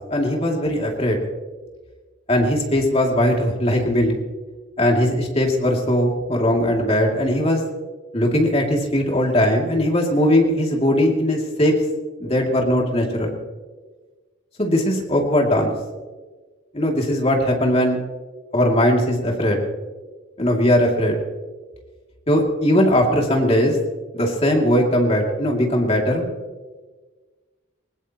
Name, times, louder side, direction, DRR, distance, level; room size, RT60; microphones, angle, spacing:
voice 1, 0.1-1.2 2.3-4.1 4.8-7.6 8.1-11.7 12.2-13.3 14.6-15.7 16.7-18.0 18.5-19.6 20.4-21.2 22.3-23.8 24.1-26.3, left 1 dB, 30° left, 0 dB, 2.6 m, -19 dB
20.5 x 19.5 x 3.0 m, 1.3 s
head